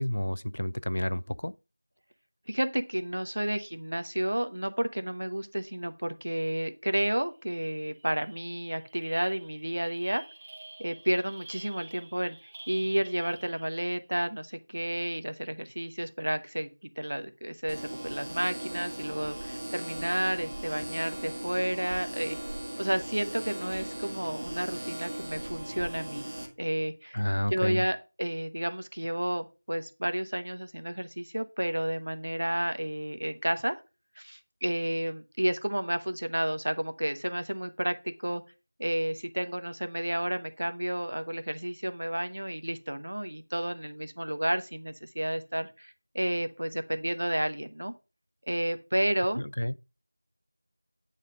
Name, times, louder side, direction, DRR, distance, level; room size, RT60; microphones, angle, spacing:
voice 1, 0.0-1.5 27.1-27.8 49.4-49.7, left 1 dB, 60° left, 0.5 m, -30 dB
voice 2, 2.5-10.2 10.8-12.4 12.7-16.7 17.0-22.4 22.8-26.2 26.6-27.2 27.5-33.8 34.2-38.4 38.8-47.9 48.5-49.4, right 1 dB, 70° right, 1.1 m, -31 dB
sound 1, 7.3-7.4 7.7-14.1, right 2 dB, 15° right, 0.4 m, -50 dB
sound 2, 17.7-26.5, right 1 dB, 45° right, 1.8 m, -38 dB
9.2 x 4.1 x 5.2 m
figure-of-eight pair, 180°, 0 cm